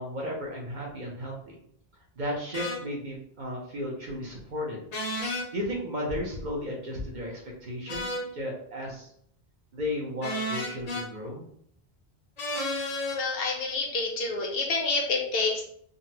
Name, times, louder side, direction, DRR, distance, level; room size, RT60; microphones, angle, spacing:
voice 1, 0.0-1.5 2.2-4.8 5.3-9.1 9.7-11.4, left 1 dB, 50° right, -2 dB, 0.8 m, -34 dB
sound 1, 2.5-2.8 4.9-5.5 7.9-8.3 10.2-11.1 12.4-13.2, left 1 dB, 45° left, 0.6 m, -31 dB
voice 2, 13.1-15.6, left 3 dB, 70° left, 1 dB, 1.0 m, -28 dB
3.8 x 2.1 x 2.7 m, 0.67 s
omnidirectional pair, 1.0 m